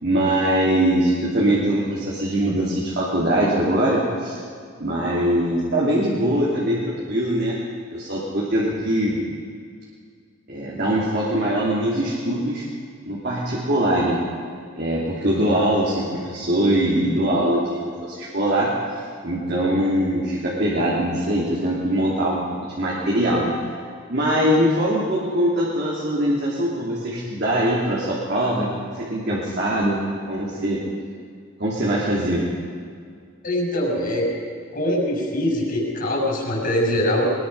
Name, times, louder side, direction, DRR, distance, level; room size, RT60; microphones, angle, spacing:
voice 1, 0.0-4.4 4.8-7.6 7.9-9.2 10.5-12.6 13.0-14.2 14.7-18.7 19.2-22.4 22.8-23.5 24.1-28.7 28.9-30.0 30.3-30.8 31.6-32.4, right 1 dB, 50° right, -5 dB, 3.0 m, -22 dB
voice 2, 33.4-34.3 34.7-37.2, left 1 dB, 40° left, 0 dB, 6.4 m, -23 dB
22.5 x 21.0 x 5.6 m, 2.2 s
head